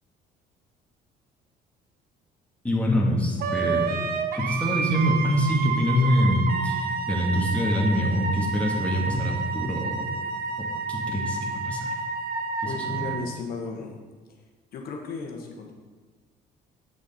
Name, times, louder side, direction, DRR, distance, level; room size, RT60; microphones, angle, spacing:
voice 1, 2.6-4.0 4.4-10.0 10.9-11.9 12.7-13.1, equal, 10° left, -2 dB, 1.6 m, -25 dB
Wind instrument woodwind instrument, 3.4-13.3, right 5 dB, 65° right, 0.8 m, -30 dB
voice 2, 12.6-14.0 14.7-15.7, left 4 dB, 65° left, 2 dB, 1.1 m, -35 dB
7.8 x 6.3 x 4.1 m, 1.4 s
cardioid pair, 110°, 17 cm